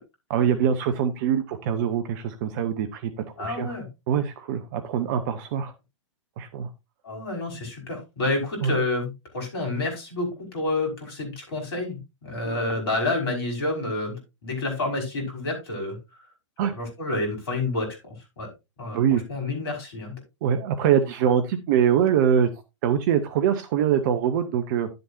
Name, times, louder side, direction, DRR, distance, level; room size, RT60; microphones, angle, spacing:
voice 1, 0.3-3.1 3.4-3.8 4.1-5.7 6.4-6.7 8.6-8.8 12.4-12.6 16.6-16.7 18.9-19.2 20.4-22.5 22.8-24.9, right 8 dB, 40° right, 9 dB, 0.8 m, -23 dB
voice 2, 3.4-3.9 7.0-16.0 16.7-18.5 18.8-20.2, left 2 dB, 50° left, 2 dB, 5.2 m, -29 dB
11.0 x 7.9 x 2.7 m, 0.24 s
figure-of-eight pair, 105°, 16 cm